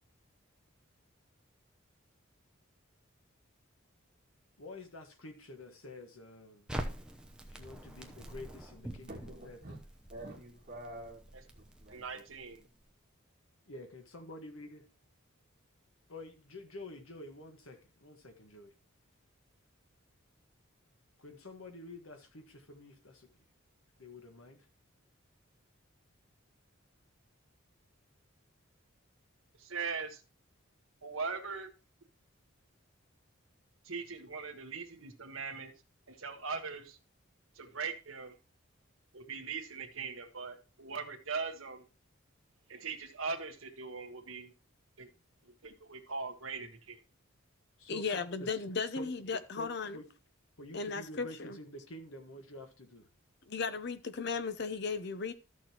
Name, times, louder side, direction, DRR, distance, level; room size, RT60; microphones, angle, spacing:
voice 1, 4.6-6.7 7.5-9.8 13.7-14.8 16.1-18.7 21.2-23.3 24.0-24.7 47.8-48.5 48.9-50.1 50.6-53.1, left 2 dB, 80° left, 1.6 m, -49 dB
Crackle, 6.7-12.8, right 1 dB, 5° right, 0.8 m, -45 dB
voice 2, 9.1-9.8 10.1-11.2 11.5-12.2, right 1 dB, 35° right, 2.0 m, -47 dB
voice 3, 11.9-12.6 29.6-30.2 31.0-31.7 33.8-35.7 36.1-37.0 37.5-38.3 39.1-41.8 42.7-44.5 45.0-45.1 45.4-47.0, right 5 dB, 75° right, 1.3 m, -40 dB
voice 4, 47.9-50.0 50.7-51.6 53.5-55.3, left 4 dB, 55° left, 0.7 m, -36 dB
13.5 x 6.4 x 3.0 m
head